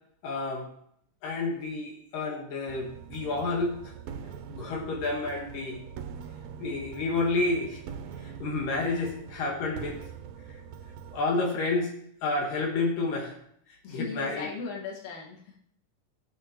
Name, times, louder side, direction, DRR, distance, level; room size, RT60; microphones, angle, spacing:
voice 1, 0.2-0.7 1.2-3.8 4.5-5.8 6.6-7.8 8.2-10.0 11.1-11.9 12.2-13.3 13.9-14.5, left 3 dB, 80° left, 1 dB, 3.2 m, -30 dB
sound 1, 2.7-11.2, right 7 dB, 80° right, 1.5 m, -43 dB
voice 2, 13.8-15.6, left 4 dB, 55° left, -2 dB, 2.8 m, -38 dB
17.0 x 6.9 x 3.0 m, 0.68 s
omnidirectional pair, 3.8 m